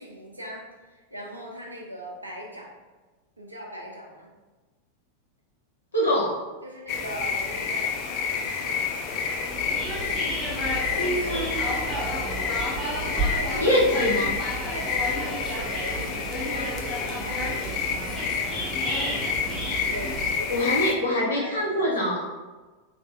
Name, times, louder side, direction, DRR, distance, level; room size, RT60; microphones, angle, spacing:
voice 1, 0.0-2.7 3.4-4.3 6.6-8.8 10.9-11.6 13.0-13.8 14.6-18.4 19.8-20.7 21.1-22.4, equal, 85° right, -2 dB, 0.7 m, -40 dB
voice 2, 5.9-6.3 11.0-11.5 13.6-14.3 20.5-22.2, left 1 dB, 70° left, -5 dB, 1.1 m, -24 dB
sound 1, 6.9-20.9, left 6 dB, 40° left, 0.4 m, -29 dB
sound 2, 9.5-20.3, right 1 dB, 5° right, 1.4 m, -32 dB
3.6 x 3.4 x 2.5 m, 1.2 s
figure-of-eight pair, 90°, 0 cm